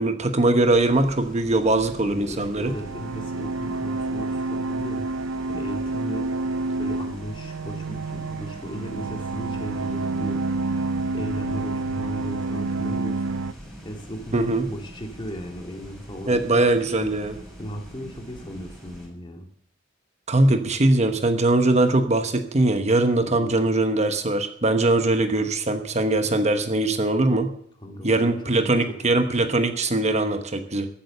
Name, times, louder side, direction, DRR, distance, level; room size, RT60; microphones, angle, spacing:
voice 1, 0.0-2.7 14.3-14.7 16.3-17.4 20.3-27.5 28.0-30.9, right 2 dB, 35° right, 7 dB, 1.0 m, -21 dB
sound 1, 0.6-19.1, equal, ahead, 6.8 m, -44 dB
voice 2, 2.0-5.1 5.5-6.3 6.8-10.4 11.1-13.4 13.8-16.7 17.0-17.1 17.6-19.5 23.2-23.6 27.8-29.3, equal, 25° left, 3 dB, 2.2 m, -36 dB
sound 2, 2.4-13.5, right 3 dB, 80° right, 0.5 m, -29 dB
14.5 x 8.9 x 6.7 m, 0.66 s
head